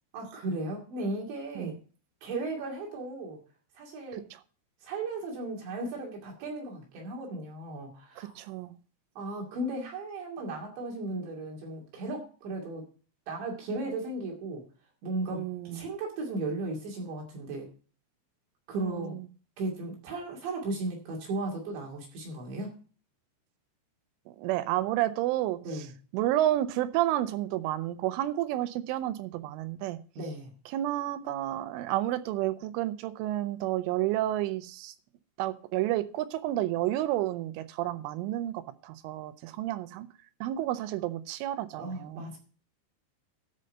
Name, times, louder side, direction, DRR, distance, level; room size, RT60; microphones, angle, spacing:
voice 1, 0.1-1.8 2.2-3.4 3.8-4.3 4.8-8.3 9.2-12.9 13.3-14.6 15.0-17.7 18.7-19.2 19.6-22.7 25.6-25.9 30.2-30.5 41.8-42.4, right 2 dB, 65° right, -1 dB, 4.5 m, -36 dB
voice 2, 8.2-8.7 15.3-15.9 18.7-19.2 24.3-25.6 26.1-30.0 30.7-34.9 35.4-40.1 40.4-42.3, right 14 dB, 80° right, 10 dB, 3.2 m, -30 dB
13.0 x 5.5 x 6.5 m, 0.39 s
omnidirectional pair, 5.8 m